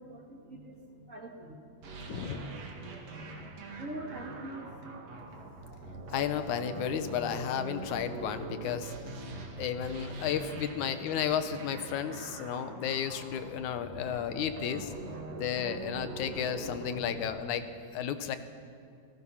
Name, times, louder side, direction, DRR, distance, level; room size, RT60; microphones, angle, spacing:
voice 1, 0.0-1.6 1.9-2.0 3.8-4.9 6.2-6.3 8.6-8.8 13.5-13.6 13.9-14.1 15.9-16.0, right 1 dB, 30° right, 1 dB, 1.9 m, -45 dB
sound 1, 1.8-17.2, right 2 dB, 65° right, 3.3 m, -43 dB
voice 2, 2.1-2.5 6.1-8.9 9.6-14.9 15.4-17.7 17.9-18.4, left 9 dB, 90° left, 10 dB, 2.5 m, -33 dB
27.5 x 20.0 x 5.7 m, 2.3 s
omnidirectional pair, 3.3 m